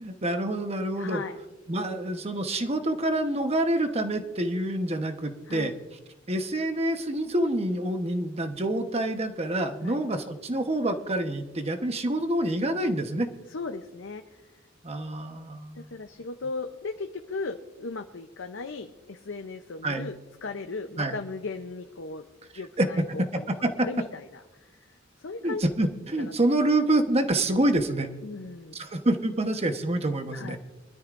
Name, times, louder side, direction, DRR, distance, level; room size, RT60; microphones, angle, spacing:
voice 1, 0.0-1.2 1.7-5.7 6.3-13.3 14.8-15.9 19.8-20.1 21.0-21.2 22.8-22.9 23.2-23.9 25.4-28.1 28.7-30.6, right 1 dB, 30° right, 6 dB, 1.1 m, -27 dB
voice 2, 1.0-1.4 5.5-5.7 9.8-10.0 13.5-14.2 15.7-20.1 20.4-22.2 22.6-24.7 25.2-25.6 26.2-26.6 28.2-28.8 30.3-30.6, left 3 dB, 70° left, 6 dB, 0.7 m, -37 dB
24.0 x 13.0 x 2.6 m, 1.1 s
head